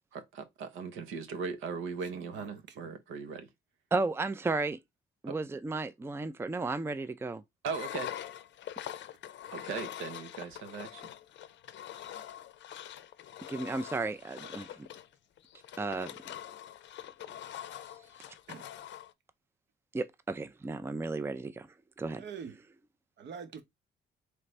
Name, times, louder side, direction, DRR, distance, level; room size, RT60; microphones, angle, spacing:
voice 1, 0.1-3.5 5.3-5.4 7.6-8.1 9.5-11.0, right 5 dB, 85° right, 1.0 m, -38 dB
voice 2, 2.1-2.9 14.3-14.5 17.0-17.4 18.5-18.7 22.2-22.6 23.2-23.6, right 6 dB, 60° right, 1.0 m, -46 dB
voice 3, 3.9-4.8 5.2-7.4 13.5-14.9 15.8-16.3 19.9-21.7 22.0-22.2, right 3 dB, 10° right, 0.4 m, -34 dB
Engine, 7.7-19.1, left 11 dB, 65° left, 0.5 m, -44 dB
3.9 x 3.4 x 3.2 m
cardioid pair, 90°, 20 cm